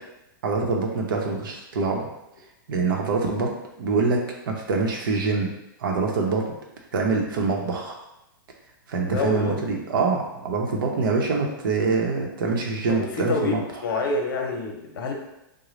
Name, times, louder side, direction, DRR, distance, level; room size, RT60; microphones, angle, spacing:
voice 1, 0.4-2.1 2.7-3.5 3.8-5.5 5.8-6.5 6.9-8.0 8.9-13.6, right 4 dB, 70° right, 1 dB, 0.8 m, -25 dB
voice 2, 9.1-9.6 12.9-15.1, left 3 dB, 70° left, 2 dB, 0.8 m, -27 dB
3.8 x 2.2 x 3.2 m, 0.90 s
supercardioid pair, 160°, 12 cm